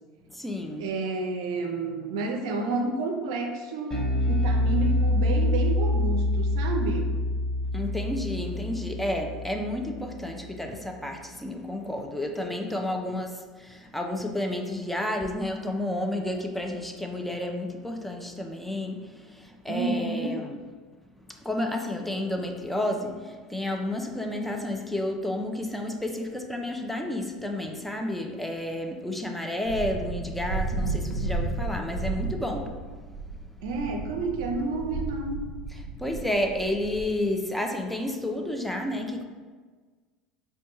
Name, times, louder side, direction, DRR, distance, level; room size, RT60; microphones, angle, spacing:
voice 1, 0.3-0.9 7.7-20.6 21.3-32.8 35.7-39.2, left 1 dB, 5° left, 2 dB, 0.4 m, -31 dB
voice 2, 0.8-7.1 13.0-13.1 19.7-20.3 33.6-35.5, right 3 dB, 65° right, 3 dB, 0.5 m, -30 dB
Bass guitar, 3.9-10.4, left 1 dB, 25° left, 1.5 m, -26 dB
sound 1, 29.6-37.0, right 3 dB, 90° left, 0.4 m, -33 dB
5.1 x 2.2 x 2.9 m, 1.4 s
figure-of-eight pair, 75°, 3 cm